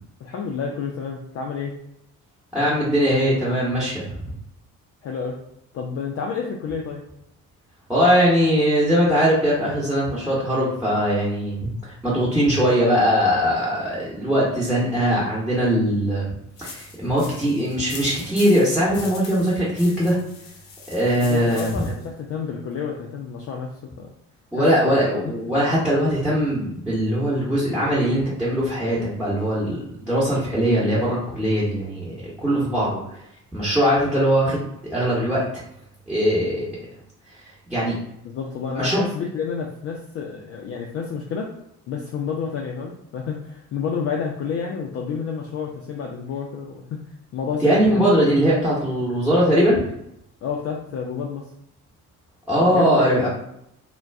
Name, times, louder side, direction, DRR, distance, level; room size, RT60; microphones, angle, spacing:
voice 1, 0.2-1.7 5.0-5.4 5.7-7.0 21.2-23.7 24.0-24.1 24.5-25.0 38.2-41.5 41.9-47.0 47.3-48.0 50.4-51.5 52.5-53.3, left 6 dB, 35° left, 0 dB, 0.4 m, -29 dB
voice 2, 2.5-4.0 7.9-16.3 16.6-20.2 20.9-21.8 24.5-32.1 32.4-33.0 33.5-35.4 36.1-36.7 37.7-37.9 38.7-39.0 47.6-49.8 52.5-53.3, equal, ahead, -9 dB, 0.9 m, -20 dB
sound 1, 16.6-22.1, left 5 dB, 70° left, 0.6 m, -41 dB
2.3 x 2.2 x 3.4 m, 0.76 s
figure-of-eight pair, 50°, 45 cm